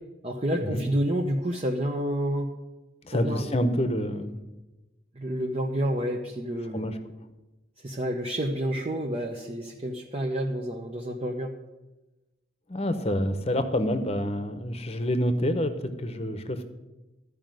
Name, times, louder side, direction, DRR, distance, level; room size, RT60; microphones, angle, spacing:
voice 1, 0.2-2.5 3.1-3.5 5.1-6.9 7.8-11.5, equal, 30° right, -1 dB, 1.0 m, -29 dB
voice 2, 3.0-4.4 6.7-6.9 12.7-16.6, equal, 30° left, 9 dB, 1.0 m, -27 dB
14.0 x 5.1 x 9.2 m, 1.1 s
head